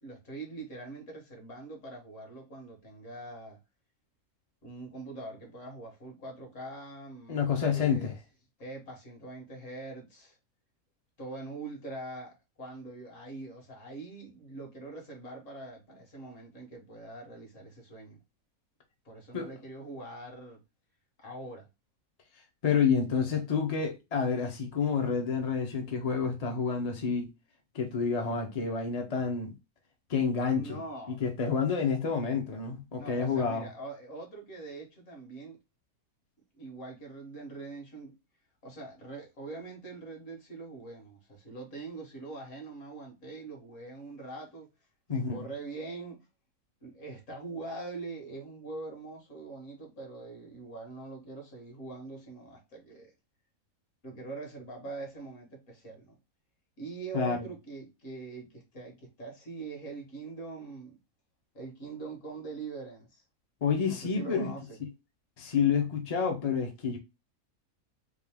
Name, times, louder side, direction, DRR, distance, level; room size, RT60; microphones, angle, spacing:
voice 1, 0.0-3.6 4.6-8.1 8.6-10.4 11.2-18.2 19.1-20.6 21.2-21.7 30.5-31.2 33.0-35.6 36.6-38.1 38.6-44.7 45.1-46.2 46.8-53.1 54.0-56.2 56.8-61.0 61.5-63.2 63.9-64.8, right 3 dB, 55° left, 1.7 m, -43 dB
voice 2, 7.3-8.1 19.3-19.5 22.6-27.3 27.7-29.5 30.1-30.8 31.1-33.7 45.1-45.4 57.1-57.5 63.6-64.5 65.4-67.0, left 6 dB, 35° left, 0.7 m, -29 dB
3.6 x 2.6 x 3.5 m
omnidirectional pair, 1.6 m